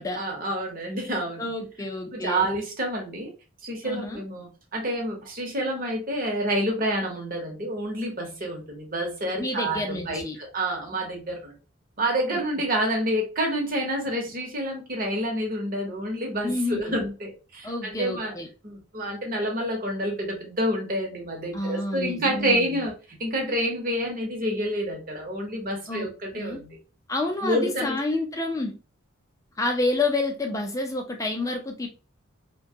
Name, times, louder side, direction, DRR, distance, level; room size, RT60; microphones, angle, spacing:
voice 1, 0.2-1.5 2.1-3.3 3.6-11.5 12.0-18.3 18.6-26.8 27.4-28.0, right 1 dB, 40° right, 0.8 m, -28 dB
voice 2, 1.4-2.5 3.8-4.2 9.4-10.4 16.4-17.0 17.6-18.5 21.5-22.8 25.9-26.1 26.3-26.6 27.1-28.8 29.6-31.9, left 2 dB, 15° left, 0.4 m, -29 dB
2.8 x 2.2 x 2.7 m
head